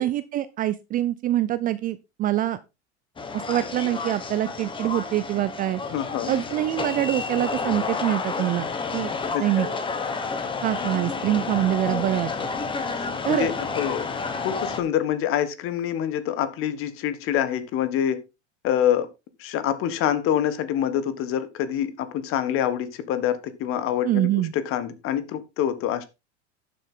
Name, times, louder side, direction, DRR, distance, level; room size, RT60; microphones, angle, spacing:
voice 1, 0.0-2.6 3.3-5.8 6.3-9.1 9.4-9.7 10.6-12.5 13.2-13.5 24.0-24.5, right 13 dB, 25° right, 0.4 m, -25 dB
sound 1, 3.2-14.8, left 4 dB, 15° left, 1.4 m, -30 dB
voice 2, 5.9-6.3 9.3-9.7 12.9-14.1 14.4-18.2 18.6-19.1 19.4-24.3 24.5-26.0, left 10 dB, 40° left, 1.5 m, -26 dB
12.0 x 7.6 x 3.8 m
supercardioid pair, 145°, 34 cm